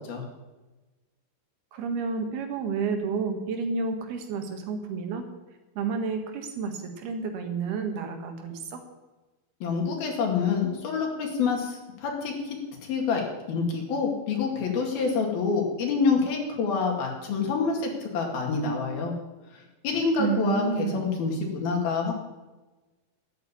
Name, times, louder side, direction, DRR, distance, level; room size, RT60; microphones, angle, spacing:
voice 1, 1.7-5.3 5.8-8.8 20.2-21.0, right 5 dB, 85° right, 5 dB, 3.7 m, -30 dB
voice 2, 9.6-12.6 12.9-19.1 19.8-22.2, left 5 dB, 75° left, 1 dB, 4.0 m, -27 dB
12.0 x 9.3 x 8.5 m, 1.2 s
omnidirectional pair, 4.4 m